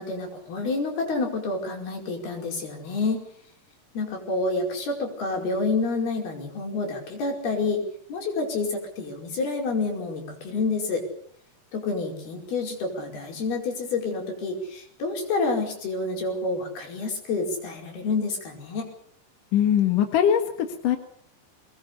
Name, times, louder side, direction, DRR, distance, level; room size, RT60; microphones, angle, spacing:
voice 1, 0.0-3.3 4.0-11.1 11.7-18.9, left 3 dB, 80° left, 2 dB, 7.0 m, -28 dB
voice 2, 19.5-21.0, left 9 dB, 60° left, 6 dB, 3.0 m, -21 dB
23.0 x 20.0 x 8.4 m, 0.64 s
omnidirectional pair, 4.4 m